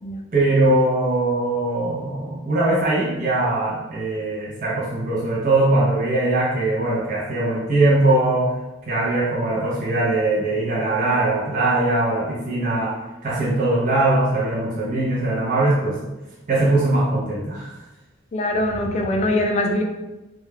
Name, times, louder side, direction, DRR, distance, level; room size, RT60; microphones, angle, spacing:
voice 1, 0.3-8.6 8.9-16.0 16.5-17.8, right 2 dB, 45° right, -6 dB, 0.5 m, -21 dB
voice 2, 18.3-19.8, left 1 dB, 35° left, 3 dB, 0.3 m, -22 dB
2.3 x 2.1 x 3.2 m, 1.0 s
head